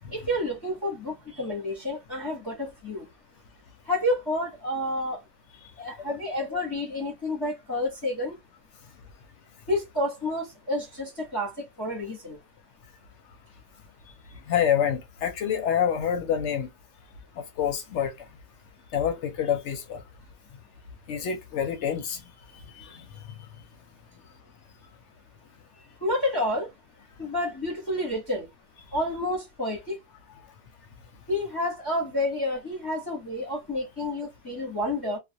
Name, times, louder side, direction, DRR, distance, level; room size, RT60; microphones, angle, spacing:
voice 1, 0.1-3.1 3.9-5.2 5.8-8.3 9.7-12.4 26.0-26.7 27.2-28.5 28.9-30.0 31.3-35.2, left 1 dB, 20° left, 0.7 m, -29 dB
voice 2, 14.5-16.7 17.6-18.1 18.9-20.0 21.1-22.2 22.8-23.0 35.0-35.1, left 8 dB, 65° left, 0.8 m, -27 dB
2.4 x 2.1 x 2.7 m
omnidirectional pair, 1.5 m